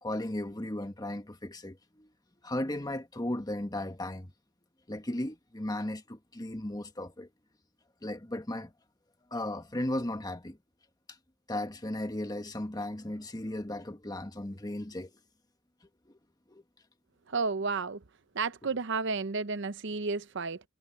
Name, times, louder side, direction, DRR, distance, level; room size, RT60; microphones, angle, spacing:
voice 1, 0.0-2.1 2.4-4.3 4.9-7.3 8.0-8.7 9.3-10.6 11.5-15.1 16.1-16.2 16.5-16.6, left 1 dB, 20° left, 1.3 m, -36 dB
voice 2, 17.3-18.0 18.3-20.6, right 4 dB, 60° right, 0.8 m, -32 dB
head